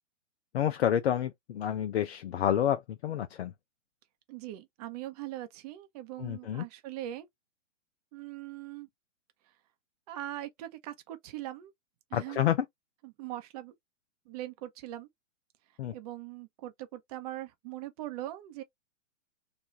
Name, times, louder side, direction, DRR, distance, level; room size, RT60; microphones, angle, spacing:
voice 1, 0.5-3.5 6.2-6.6 12.1-12.6 15.8-15.9, left 10 dB, 55° left, 0.6 m, -29 dB
voice 2, 4.3-7.3 8.1-8.9 10.1-11.7 12.1-12.4 13.0-13.7 14.3-15.1 15.9-18.6, right 14 dB, 30° right, 0.7 m, -41 dB
3.2 x 2.3 x 2.8 m
figure-of-eight pair, 120°, 38 cm